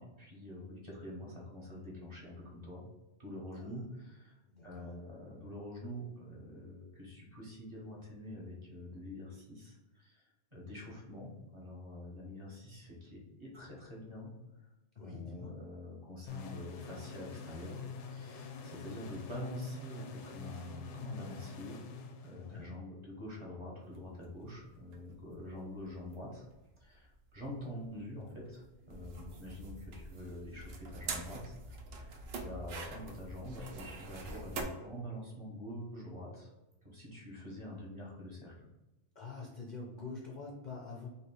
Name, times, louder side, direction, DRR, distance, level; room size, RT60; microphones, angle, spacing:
voice 1, 0.0-2.8 3.2-10.2 10.5-14.3 15.0-21.8 22.2-26.5 26.8-31.5 31.9-36.5 36.8-38.7, left 1 dB, 25° right, -4 dB, 1.2 m, -46 dB
voice 2, 3.5-3.9 4.5-4.9 15.0-15.5 22.3-22.7 29.3-29.6 39.2-41.1, left 4 dB, 50° left, -2 dB, 0.6 m, -46 dB
sound 1, 16.3-22.8, left 5 dB, 75° left, 0.9 m, -46 dB
sound 2, 23.9-34.6, right 3 dB, 60° right, 0.8 m, -45 dB
3.1 x 2.9 x 4.5 m, 1.0 s
omnidirectional pair, 1.2 m